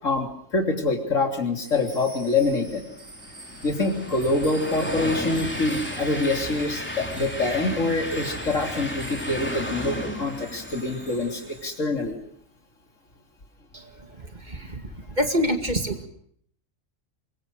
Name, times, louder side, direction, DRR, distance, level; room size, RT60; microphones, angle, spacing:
voice 1, 0.0-2.8 3.6-12.2, left 3 dB, 80° left, 4 dB, 3.5 m, -25 dB
sound 1, 1.6-11.9, right 2 dB, 60° right, 4.4 m, -47 dB
Train, 2.2-11.7, left 1 dB, 10° left, 3.4 m, -34 dB
voice 2, 14.2-14.9 15.2-16.1, equal, 35° right, 6 dB, 2.4 m, -26 dB
24.5 x 22.5 x 6.4 m, 0.64 s
omnidirectional pair, 1.3 m